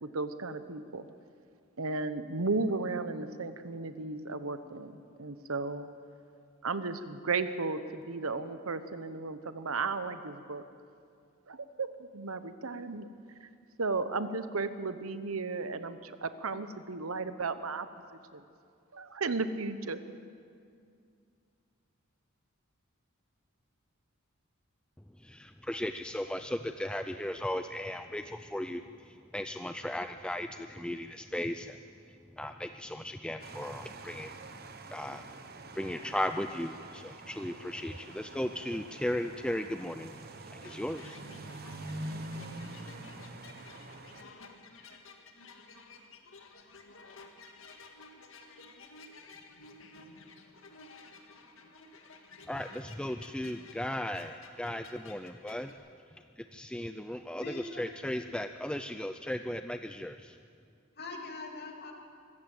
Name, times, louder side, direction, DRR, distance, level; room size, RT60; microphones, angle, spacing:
voice 1, 0.0-1.0 1.8-5.9 6.6-10.6 11.5-13.1 13.4-13.5 13.8-17.9 18.3-18.4 18.9-20.0, right 3 dB, 85° right, 11 dB, 1.1 m, -34 dB
voice 2, 25.2-31.8 32.1-34.3 34.9-35.2 35.7-41.2 52.5-55.7 56.4-60.4, left 1 dB, 5° left, 8 dB, 0.4 m, -36 dB
sound 1, 33.4-44.2, right 2 dB, 50° right, 1.1 m, -45 dB
sound 2, 40.6-55.7, left 3 dB, 65° left, 1.8 m, -53 dB
voice 3, 57.4-57.9 61.0-61.9, left 2 dB, 50° left, 1 dB, 2.6 m, -41 dB
24.5 x 14.0 x 7.8 m, 2.4 s
head